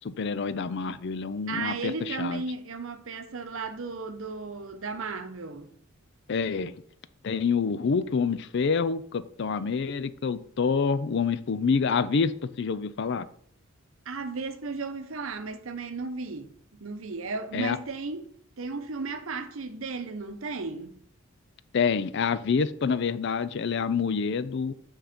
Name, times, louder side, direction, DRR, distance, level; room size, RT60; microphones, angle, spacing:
voice 1, 0.0-2.4 6.3-6.7 7.2-13.2 17.5-17.8 21.7-24.7, left 5 dB, 55° left, 0.4 m, -27 dB
voice 2, 1.5-5.7 14.1-18.3 18.6-21.0, right 4 dB, 70° right, 0.8 m, -35 dB
8.6 x 3.9 x 5.0 m
head